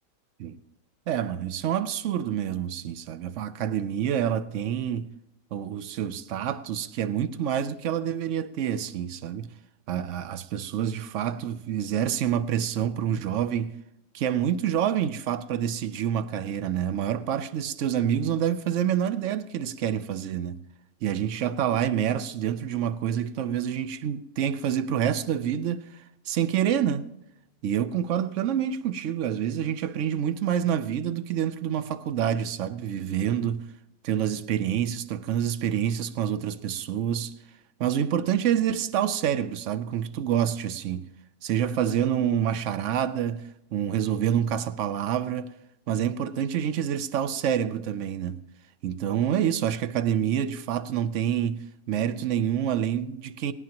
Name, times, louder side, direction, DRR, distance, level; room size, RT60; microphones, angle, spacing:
voice 1, 1.1-5.1 5.5-9.5 9.9-13.7 14.1-20.6 21.0-25.9 26.3-27.1 27.6-33.7 34.0-37.3 37.8-41.1 41.4-43.4 43.7-45.5 45.9-48.4 48.8-53.5, right 9 dB, 65° right, 0.8 m, -27 dB
19.0 x 18.0 x 2.9 m
omnidirectional pair, 1.8 m